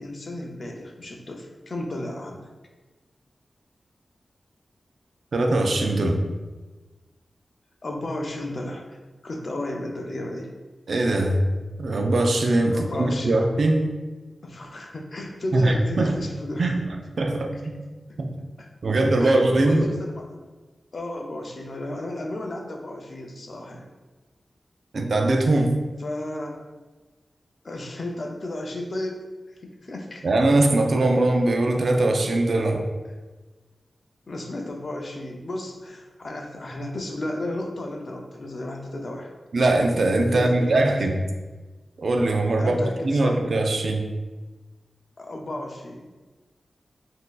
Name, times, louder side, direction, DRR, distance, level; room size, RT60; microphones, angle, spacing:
voice 1, 0.0-2.5 7.8-9.0 9.2-10.5 12.7-13.4 14.4-16.9 18.6-18.7 19.2-19.4 19.6-20.4 20.9-23.9 26.0-26.6 27.6-29.2 29.6-30.3 34.3-39.3 40.3-40.9 42.6-43.4 45.2-46.1, left 1 dB, 60° left, 2 dB, 0.5 m, -33 dB
voice 2, 5.3-6.2 10.9-11.4 11.8-13.9 15.5-16.1 16.6-17.9 18.2-18.3 18.8-19.9 24.9-25.7 30.2-32.9 39.5-41.3 42.0-44.1, right 2 dB, 70° right, 3 dB, 0.4 m, -21 dB
3.7 x 2.6 x 2.3 m, 1.3 s
cardioid pair, 55°, 0 cm